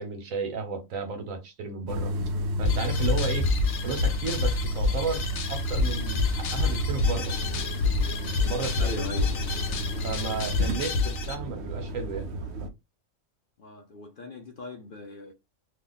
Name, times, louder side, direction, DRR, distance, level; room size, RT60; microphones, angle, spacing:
voice 1, 0.0-2.2 2.6-3.5 3.8-7.4 8.4-8.9 10.0-12.4, right 4 dB, 85° right, 1.3 m, -33 dB
sound 1, 1.9-12.7, right 1 dB, 65° right, 0.8 m, -32 dB
sound 2, 2.6-11.4, left 4 dB, 85° left, 1.1 m, -28 dB
voice 2, 8.8-9.4 13.6-15.3, left 2 dB, 55° left, 0.6 m, -39 dB
2.8 x 2.2 x 3.8 m
omnidirectional pair, 1.4 m